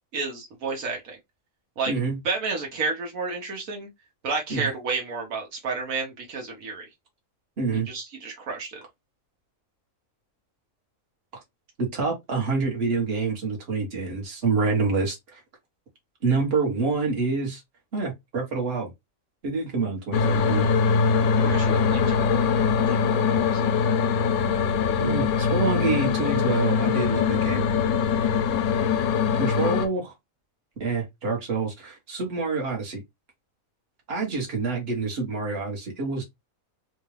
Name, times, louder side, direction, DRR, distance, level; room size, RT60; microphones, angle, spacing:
voice 1, 0.1-1.2 1.8-1.9 2.2-3.9 4.2-6.9 7.9-8.8 21.3-22.5 22.9-24.0, right 4 dB, 80° right, 1.4 m, -31 dB
voice 2, 1.9-2.2 4.5-4.7 7.6-7.9 11.8-15.4 16.2-17.6 17.9-18.9 19.4-20.7 25.0-27.6 28.2-28.3 29.3-30.1 30.8-33.0 34.1-36.2, right 4 dB, 50° right, 1.4 m, -27 dB
sound 1, 20.1-29.9, left 6 dB, 85° left, 1.1 m, -22 dB
4.2 x 2.3 x 3.2 m
omnidirectional pair, 1.4 m